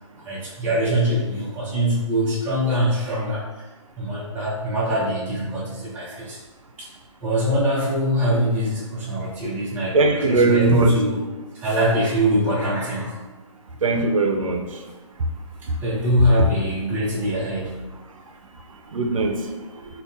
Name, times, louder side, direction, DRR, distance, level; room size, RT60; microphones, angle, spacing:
voice 1, 0.1-3.6 4.0-6.4 6.8-6.9 7.2-11.2 11.5-13.2 13.9-14.0 15.8-17.8, equal, 10° right, -8 dB, 0.6 m, -23 dB
voice 2, 9.9-10.9 13.8-14.6 18.9-19.4, right 3 dB, 80° right, 4 dB, 0.5 m, -19 dB
3.4 x 2.2 x 2.6 m, 1.2 s
hypercardioid pair, 150°, 17 cm